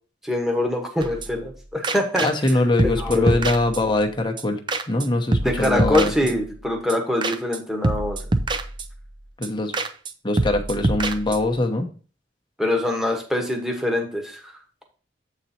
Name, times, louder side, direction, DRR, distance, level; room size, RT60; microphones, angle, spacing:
voice 1, 0.2-2.3 3.0-3.4 5.4-8.2 12.6-14.5, left 1 dB, ahead, 2 dB, 1.2 m, -24 dB
sound 1, 1.0-1.6 1.8-2.5 2.8-4.1 4.4-4.5 4.7-5.1 5.3-6.6 6.9-7.0 7.2-7.6 7.8-9.1 9.4-9.5 9.7-10.1 10.4-11.6, right 2 dB, 25° right, 0.5 m, -26 dB
voice 2, 2.2-4.6 4.9-6.1 9.4-9.7 10.2-11.9, left 2 dB, 25° left, 4 dB, 0.9 m, -22 dB
8.1 x 4.1 x 4.3 m, 0.39 s
head